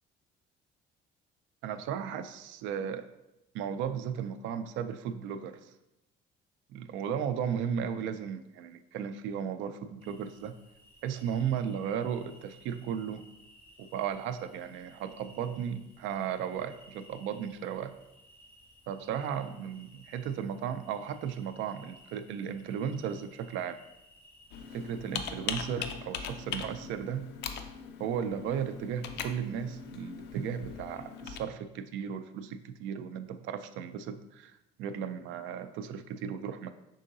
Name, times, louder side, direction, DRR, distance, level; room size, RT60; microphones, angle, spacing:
voice 1, 1.6-3.0 3.5-5.7 6.7-10.5 11.0-13.2 13.8-17.9 18.9-23.8 24.7-27.3 28.0-34.5 34.8-36.7, right 8 dB, 80° right, 10 dB, 0.4 m, -35 dB
sound 1, 10.0-25.2, equal, 10° left, 0.6 m, -59 dB
Computer keyboard, 24.5-31.4, left 7 dB, 65° left, 0.4 m, -40 dB
5.4 x 3.7 x 2.6 m, 0.91 s
cardioid pair, 170°, 19 cm